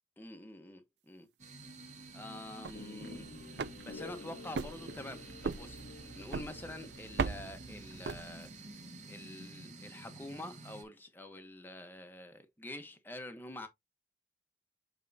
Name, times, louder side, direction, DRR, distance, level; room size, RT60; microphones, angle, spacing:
voice 1, 0.2-1.3 2.1-3.3 3.5-5.8 6.1-8.5 9.1-13.7, left 1 dB, 10° left, 1.1 m, -47 dB
sound 1, 1.4-10.8, right 2 dB, 40° right, 1.8 m, -51 dB
sound 2, 2.5-8.8, right 4 dB, 70° right, 0.5 m, -40 dB
sound 3, 2.7-7.9, left 4 dB, 75° left, 0.6 m, -51 dB
7.4 x 4.6 x 2.8 m
head